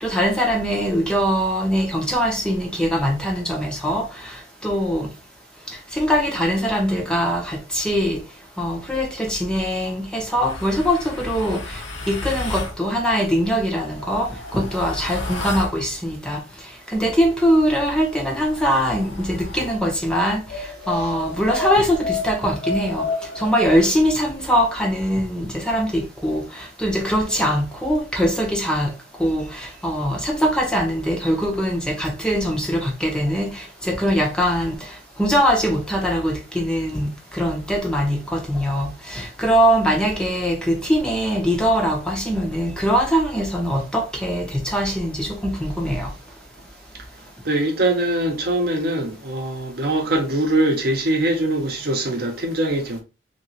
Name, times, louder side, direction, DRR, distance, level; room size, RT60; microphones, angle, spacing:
voice 1, 0.0-5.1 5.9-8.2 8.6-16.4 16.9-23.1 23.4-28.9 29.2-46.1, equal, 5° left, 0.5 m, -22 dB
sound 1, 10.4-12.8 13.7-15.8 17.4-19.8 20.5-23.9, left 2 dB, 75° left, 0.8 m, -32 dB
voice 2, 47.4-53.0, right 1 dB, 55° right, 0.7 m, -22 dB
2.9 x 2.8 x 2.7 m
head